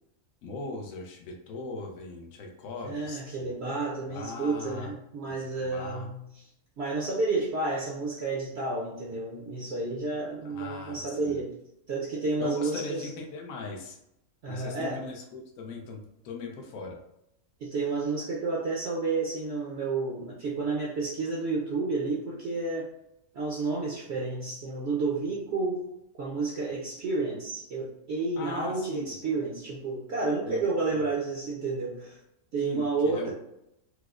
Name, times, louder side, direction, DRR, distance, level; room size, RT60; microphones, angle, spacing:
voice 1, 0.4-3.5 4.1-4.9 5.2-6.1 10.4-11.4 12.4-14.0 14.5-17.0 28.4-29.2 30.4-30.6 30.9-31.1 32.6-33.3, left 3 dB, 75° left, 1 dB, 1.1 m, -39 dB
voice 2, 2.8-6.2 6.8-11.5 11.9-13.1 14.4-15.0 17.6-22.9 23.3-25.9 26.2-32.2 32.5-33.3, right 3 dB, 60° right, -3 dB, 0.8 m, -30 dB
4.7 x 2.0 x 2.4 m, 0.81 s
omnidirectional pair, 1.5 m